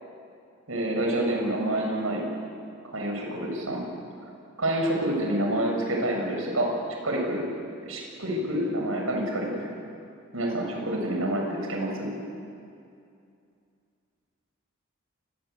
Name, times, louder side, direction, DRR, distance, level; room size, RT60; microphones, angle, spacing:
voice 1, 0.7-2.3 2.9-3.8 4.6-6.7 7.0-7.4 7.9-9.6 10.3-12.1, right 1 dB, 80° right, 1 dB, 7.2 m, -27 dB
27.5 x 22.5 x 8.4 m, 2.5 s
head